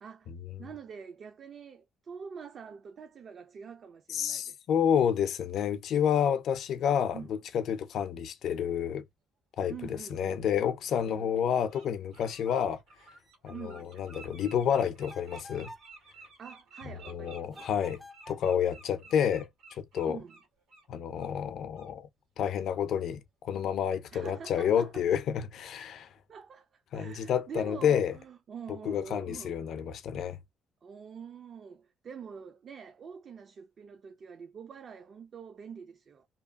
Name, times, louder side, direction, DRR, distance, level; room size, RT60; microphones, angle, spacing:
voice 1, 0.0-0.3 0.6-4.6 7.1-7.4 9.7-10.4 11.1-11.4 13.5-13.9 16.4-17.7 20.1-20.4 24.1-25.0 26.3-29.7 30.8-36.3, right 6 dB, 55° right, 0.4 m, -45 dB
voice 2, 4.1-9.0 9.6-9.7 10.1-12.8 13.4-15.7 17.1-18.0 18.3-19.5 19.8-20.2 20.9-22.1 22.4-26.1 26.9-28.2 28.8-30.4, left 8 dB, 75° left, 0.4 m, -29 dB
Bird, 10.0-10.1 10.9-11.0 11.5-11.9 12.1-20.9 21.2-21.3 21.7-21.9, right 3 dB, 85° right, 1.4 m, -53 dB
sound 1, 15.1-15.9 17.5-18.5, left 1 dB, 10° left, 0.4 m, -49 dB
2.8 x 2.3 x 2.2 m
cardioid pair, 90°, 0 cm